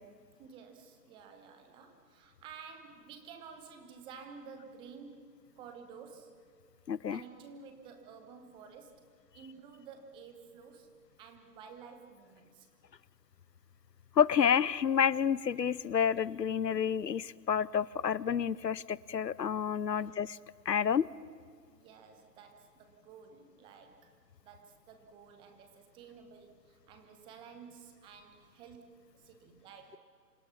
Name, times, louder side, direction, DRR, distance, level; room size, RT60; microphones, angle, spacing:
voice 1, 0.4-5.3 5.6-6.4 7.1-9.0 9.3-10.9 11.2-12.7 19.9-20.2 21.7-24.1 24.4-30.0, right 6 dB, 10° right, 6 dB, 1.1 m, -52 dB
voice 2, 6.9-7.2 14.2-20.4 20.7-21.1, left 8 dB, 80° left, 21 dB, 0.8 m, -29 dB
27.0 x 26.5 x 5.9 m, 2.1 s
figure-of-eight pair, 145°, 49 cm